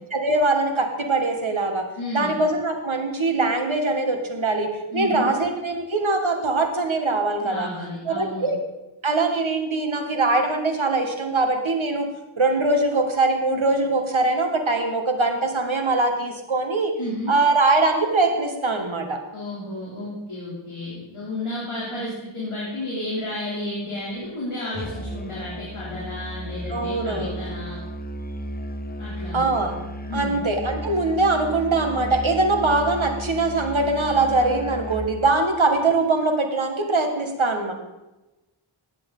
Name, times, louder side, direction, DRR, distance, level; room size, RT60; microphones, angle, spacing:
voice 1, 0.1-1.9 2.1-7.7 8.1-8.6 9.0-12.1 12.4-16.9 17.3-19.2 26.7-27.3 29.3-29.7 30.1-37.7, right 3 dB, 70° right, 3 dB, 2.0 m, -22 dB
voice 2, 2.0-2.4 4.9-5.3 7.4-8.5 17.0-17.4 19.3-27.8 29.0-29.5 30.1-30.4, left 1 dB, 90° left, -7 dB, 3.6 m, -32 dB
Musical instrument, 24.7-35.1, equal, 20° left, 1.1 m, -34 dB
16.0 x 11.0 x 4.0 m, 1.0 s
wide cardioid pair, 50°, 49 cm